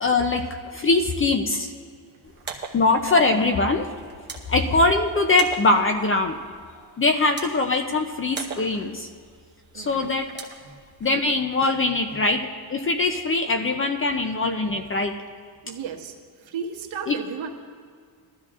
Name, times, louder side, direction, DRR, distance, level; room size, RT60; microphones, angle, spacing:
voice 1, 0.0-1.7 2.7-3.9 4.5-6.3 7.0-9.1 9.7-10.3 11.0-12.4 12.7-15.1 17.1-17.2, left 3 dB, 25° left, 5 dB, 0.5 m, -22 dB
sound 1, 2.2-11.2, right 5 dB, 20° right, 1.0 m, -42 dB
voice 2, 9.7-10.1 10.6-10.8 12.1-12.2 14.6-14.8 15.6-17.5, right 7 dB, 70° right, 2 dB, 1.4 m, -35 dB
20.5 x 13.0 x 2.4 m, 2.1 s
cardioid pair, 180°, 49 cm